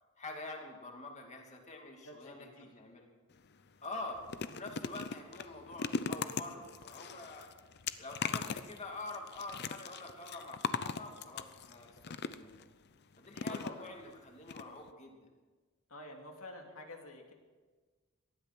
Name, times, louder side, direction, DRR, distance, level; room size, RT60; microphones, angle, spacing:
voice 1, 0.2-3.1 3.8-7.5 8.0-12.5 13.2-15.3, left 2 dB, 35° left, 1 dB, 2.7 m, -46 dB
voice 2, 2.0-2.7 13.5-13.7 15.9-17.3, left 2 dB, 70° left, 2 dB, 2.6 m, -48 dB
sound 1, 3.3-3.5 3.8-12.6 13.3-14.1 14.5-14.6 14.9-15.0, left 5 dB, 50° left, 0.7 m, -40 dB
18.5 x 12.5 x 6.2 m, 1.4 s
head